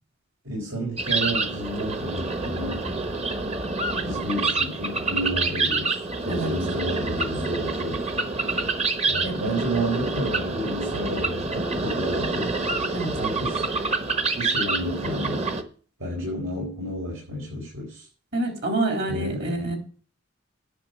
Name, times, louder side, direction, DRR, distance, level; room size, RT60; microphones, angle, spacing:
voice 1, 0.4-2.8 4.0-6.0 6.2-8.0 9.0-12.6 13.2-13.6 14.3-15.5 16.0-18.1 19.1-19.6, equal, 85° right, -3 dB, 4.5 m, -31 dB
sound 1, 1.0-15.6, right 3 dB, 30° right, 1.1 m, -27 dB
voice 2, 18.3-19.8, right 2 dB, 60° right, 3 dB, 3.8 m, -27 dB
10.5 x 6.0 x 8.2 m, 0.42 s
head